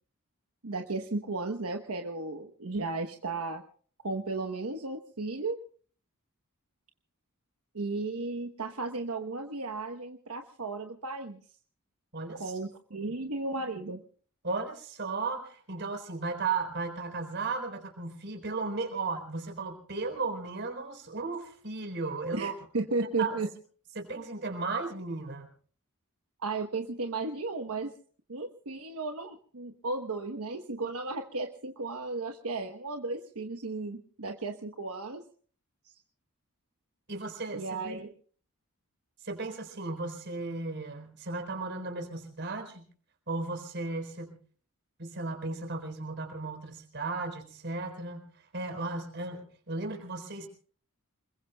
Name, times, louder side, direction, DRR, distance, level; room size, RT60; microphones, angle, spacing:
voice 1, 0.6-3.6 4.0-5.6 7.7-11.4 12.4-14.0 22.3-23.5 26.4-27.9 28.3-35.2 37.5-38.1, right 3 dB, 80° right, 4 dB, 1.1 m, -34 dB
voice 2, 12.1-12.6 12.9-13.2 14.4-22.6 23.2-23.4 23.9-25.5 37.1-38.0 39.2-42.8 43.3-44.4 45.0-50.5, right 3 dB, 55° right, 5 dB, 4.2 m, -35 dB
28.0 x 21.5 x 2.3 m, 0.43 s
head